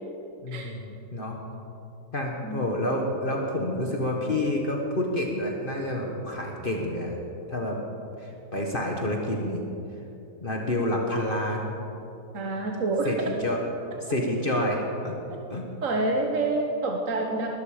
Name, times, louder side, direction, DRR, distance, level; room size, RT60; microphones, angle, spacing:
voice 1, 0.4-1.4 2.1-7.1 7.5-7.8 8.2-9.6 10.4-11.8 13.0-13.2 13.4-13.6 14.0-15.1 15.5-15.6, left 1 dB, 40° left, 0 dB, 1.5 m, -28 dB
voice 2, 12.3-13.1 15.3-15.4 15.8-17.5, right 2 dB, 65° right, 2 dB, 1.5 m, -27 dB
20.0 x 13.0 x 5.0 m, 2.9 s
omnidirectional pair, 1.5 m